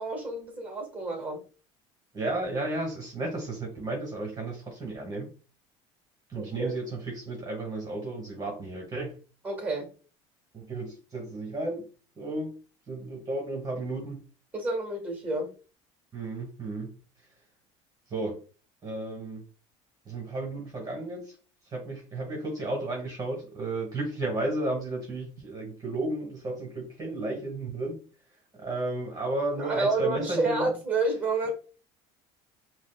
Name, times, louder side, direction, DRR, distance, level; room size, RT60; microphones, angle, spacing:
voice 1, 0.0-1.4 6.3-6.7 9.4-9.9 14.5-15.5 29.6-31.5, right 2 dB, 10° right, 1.4 m, -29 dB
voice 2, 2.1-5.3 6.3-9.1 10.5-11.9 12.2-12.5 12.9-14.2 16.1-16.9 18.1-18.4 18.8-19.4 20.0-21.3 21.7-28.0 28.6-30.7, right 2 dB, 30° right, 1.2 m, -33 dB
5.0 x 2.0 x 2.3 m
supercardioid pair, 105°, 13 cm